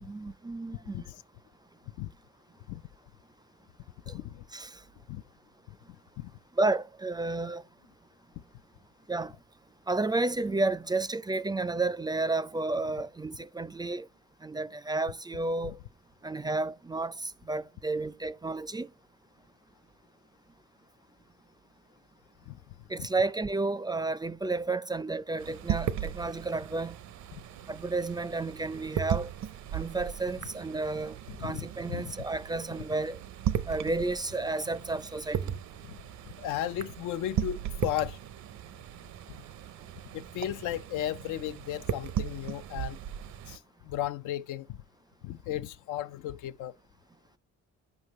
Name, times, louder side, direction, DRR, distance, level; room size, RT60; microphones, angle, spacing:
voice 1, 0.0-1.1 4.5-4.7 6.6-7.6 9.1-9.3 9.9-14.1 14.4-15.7 16.2-18.9 22.9-27.0 27.7-29.3 29.7-33.2 33.7-35.5, right 3 dB, 15° right, 0.4 m, -31 dB
voice 2, 0.7-1.2 2.0-2.1 2.7-2.8 4.1-4.4 5.1-5.2 6.2-6.3 15.6-15.8 22.5-22.6 23.0-23.1 31.3-32.1 35.8-36.0 36.4-38.2 40.1-43.0 43.5-44.8 45.2-46.7, left 12 dB, 85° left, 0.5 m, -35 dB
sound 1, 25.4-43.6, right 10 dB, 70° right, 0.6 m, -37 dB
8.0 x 5.2 x 3.1 m
cardioid pair, 90°, 30 cm